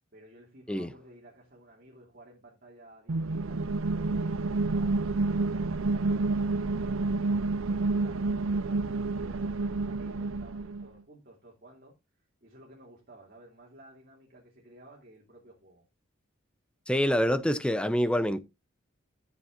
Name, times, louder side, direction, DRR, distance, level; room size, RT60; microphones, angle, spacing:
voice 1, 0.1-5.5 5.9-11.9 12.4-15.8, right 1 dB, 45° right, 2.9 m, -54 dB
sound 1, 3.1-10.9, right 3 dB, 80° right, 0.6 m, -29 dB
voice 2, 16.9-18.4, equal, 5° left, 0.7 m, -26 dB
13.5 x 7.1 x 2.6 m
head